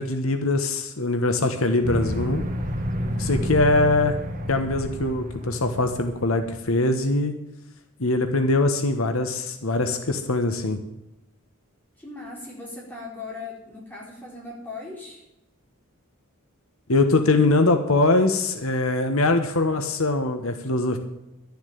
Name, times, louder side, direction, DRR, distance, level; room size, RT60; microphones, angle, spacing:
voice 1, 0.0-2.4 3.2-4.1 4.5-7.3 8.0-10.8 16.9-21.0, left 2 dB, 75° left, 7 dB, 1.2 m, -22 dB
sound 1, 1.8-6.6, equal, 40° right, 1.6 m, -30 dB
voice 2, 3.0-3.5 12.0-15.2, left 3 dB, 10° left, -4 dB, 4.4 m, -39 dB
12.0 x 7.2 x 9.3 m, 0.89 s
head